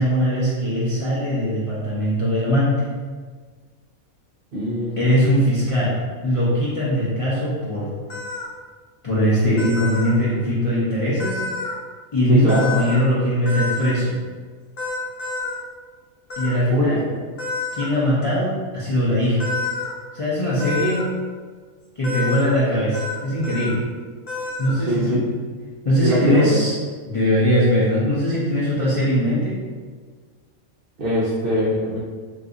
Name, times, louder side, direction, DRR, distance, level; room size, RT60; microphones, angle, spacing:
voice 1, 0.0-2.8 5.0-8.0 9.0-11.4 12.1-14.1 16.4-17.0 17.7-19.5 20.1-21.1 22.0-23.8 24.6-25.2 25.8-26.7 27.1-29.6, equal, 55° left, -9 dB, 0.3 m, -20 dB
voice 2, 4.5-5.1 12.3-12.7 16.7-17.0 24.9-25.2 26.0-26.6 31.0-32.0, equal, 60° right, -7 dB, 0.6 m, -22 dB
sound 1, 8.1-8.4 9.6-10.1 11.2-11.7 12.5-13.0 13.5-13.9 14.8-15.6 16.3-16.5 17.4-17.9 19.4-19.9 20.6-21.0 22.0-22.5 22.9-23.2 23.4-23.7 24.3-24.8, left 3 dB, 70° left, 1.1 m, -28 dB
2.6 x 2.4 x 3.8 m, 1.5 s
omnidirectional pair, 1.5 m